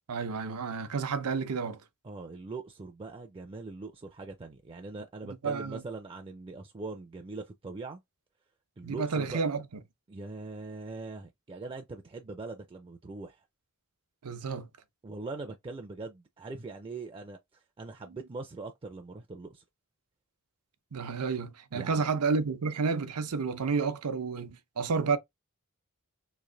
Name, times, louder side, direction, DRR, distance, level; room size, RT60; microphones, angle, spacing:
voice 1, 0.1-1.8 5.2-5.8 8.8-9.6 14.2-14.7 20.9-25.2, right 5 dB, 90° right, 0.7 m, -30 dB
voice 2, 2.0-8.0 8.8-9.4 10.1-13.4 15.0-19.6 21.7-22.1, right 3 dB, 25° right, 0.4 m, -42 dB
3.2 x 2.5 x 3.7 m
head